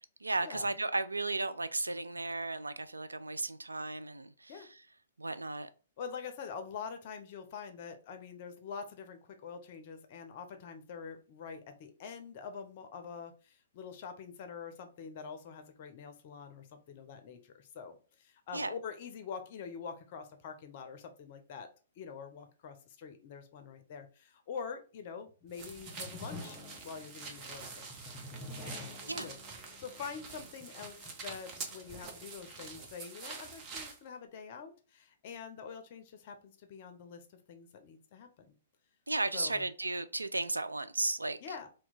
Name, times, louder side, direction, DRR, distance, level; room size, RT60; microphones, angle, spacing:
voice 1, 0.2-4.7 5.2-5.7 18.5-18.7 29.1-29.3 39.1-41.4, right 2 dB, 85° right, 0.3 m, -34 dB
voice 2, 6.0-21.7 22.0-26.6 26.8-28.0 28.6-31.0 31.2-38.6 39.3-39.6 41.4-41.7, left 6 dB, 45° left, 0.5 m, -45 dB
sound 1, 25.3-32.5, left 2 dB, 20° left, 1.1 m, -50 dB
sound 2, 25.5-34.0, right 4 dB, 30° right, 0.7 m, -46 dB
2.8 x 2.1 x 4.1 m
figure-of-eight pair, 115°, 0 cm